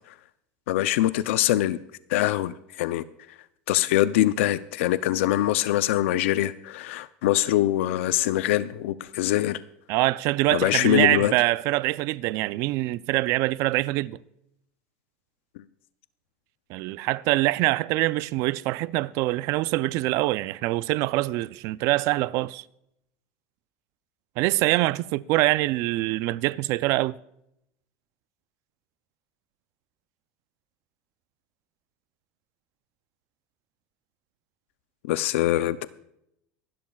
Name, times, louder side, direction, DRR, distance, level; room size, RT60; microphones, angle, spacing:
voice 1, 0.7-1.8 2.1-3.0 3.7-9.6 10.5-11.3 35.0-35.9, left 14 dB, 90° left, 0.5 m, -23 dB
voice 2, 9.9-14.2 16.7-22.6 24.4-27.1, right 18 dB, 55° right, 0.4 m, -24 dB
24.5 x 12.0 x 2.3 m
supercardioid pair, 150°, 7 cm